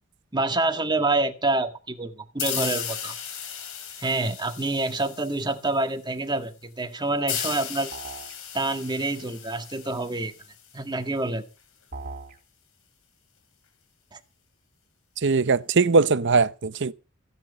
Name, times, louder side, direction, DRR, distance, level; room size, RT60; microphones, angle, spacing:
voice 1, 0.3-3.2 4.0-7.9 8.5-10.3 10.7-11.4 14.1-14.2, right 2 dB, 20° right, 1.8 m, -27 dB
sound 1, 2.4-5.8 7.3-10.8, left 8 dB, 80° left, 3.1 m, -35 dB
sound 2, 7.9-8.4 11.9-12.4, right 3 dB, 40° right, 4.0 m, -38 dB
voice 2, 15.2-16.9, right 4 dB, 60° right, 0.8 m, -20 dB
16.5 x 10.5 x 5.4 m
head